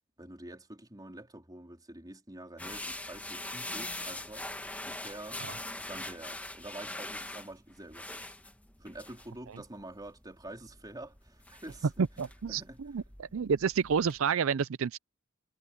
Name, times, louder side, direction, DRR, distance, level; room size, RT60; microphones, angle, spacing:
voice 1, 0.2-4.5 4.8-5.4 5.9-8.3 8.8-11.9 12.5-12.8, right 1 dB, 20° right, 3.7 m, -47 dB
sound 1, 2.6-14.2, left 1 dB, 10° left, 1.7 m, -43 dB
voice 2, 12.0-15.0, right 6 dB, 85° right, 0.5 m, -29 dB
head